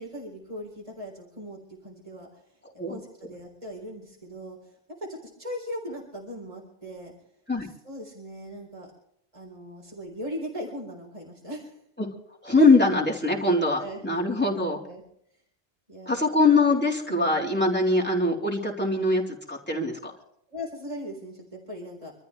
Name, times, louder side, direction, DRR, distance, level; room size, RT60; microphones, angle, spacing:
voice 1, 0.0-2.4 2.9-7.1 7.6-8.9 9.3-11.8 13.4-13.5 13.8-14.0 14.3-15.0 15.9-16.2 17.1-17.4 17.9-18.0 20.5-22.1, equal, 30° right, -1 dB, 4.1 m, -39 dB
voice 2, 12.4-14.8 16.1-20.1, left 2 dB, 10° left, -3 dB, 3.6 m, -22 dB
27.0 x 13.5 x 3.3 m, 0.70 s
omnidirectional pair, 1.1 m